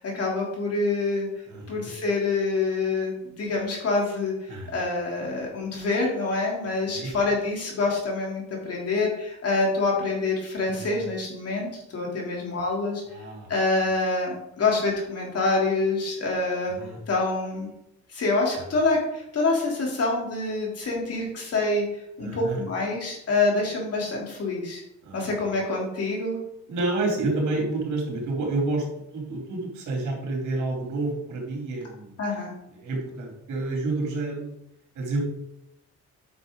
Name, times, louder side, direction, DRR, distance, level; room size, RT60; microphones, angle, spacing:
voice 1, 0.0-1.3 1.7-4.3 4.7-13.0 13.5-16.8 17.1-17.7 18.1-21.8 22.2-24.8 25.1-26.4 32.2-32.5, left 3 dB, 55° left, -2 dB, 3.5 m, -26 dB
voice 2, 1.5-1.9 4.5-4.7 6.9-7.1 10.7-11.0 13.1-13.5 13.8-13.9 16.8-17.0 22.2-22.6 25.0-25.5 26.7-28.8 29.1-32.2 32.7-34.6 34.9-35.2, right 2 dB, 75° right, -1 dB, 3.4 m, -29 dB
9.2 x 6.2 x 4.0 m, 0.81 s
cardioid pair, 90°, 30 cm